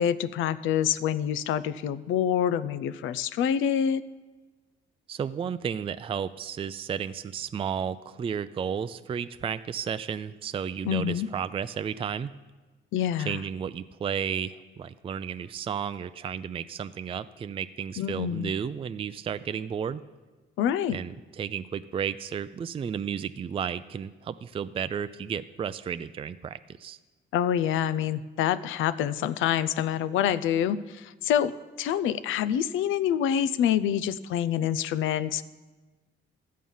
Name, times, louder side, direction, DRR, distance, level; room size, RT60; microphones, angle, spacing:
voice 1, 0.0-4.0 10.8-11.3 12.9-13.4 18.0-18.5 20.6-21.0 27.3-31.5 31.8-35.4, left 9 dB, 85° left, 14 dB, 0.5 m, -26 dB
voice 2, 5.1-12.3 13.2-20.0 20.9-27.0, right 7 dB, 30° right, 12 dB, 0.3 m, -33 dB
13.5 x 7.5 x 5.5 m, 1.3 s
cardioid pair, 90°, 20 cm